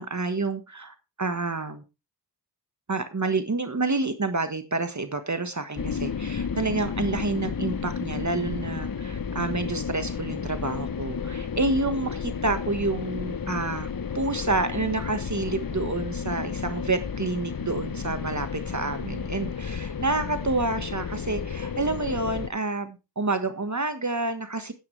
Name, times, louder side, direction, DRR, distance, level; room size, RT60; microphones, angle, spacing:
voice 1, 0.0-1.8 2.9-24.7, right 3 dB, 40° right, 9 dB, 1.4 m, -29 dB
sound 1, 5.8-22.5, left 6 dB, 50° left, 0.9 m, -32 dB
10.5 x 9.7 x 3.3 m, 0.27 s
wide cardioid pair, 50°, 43 cm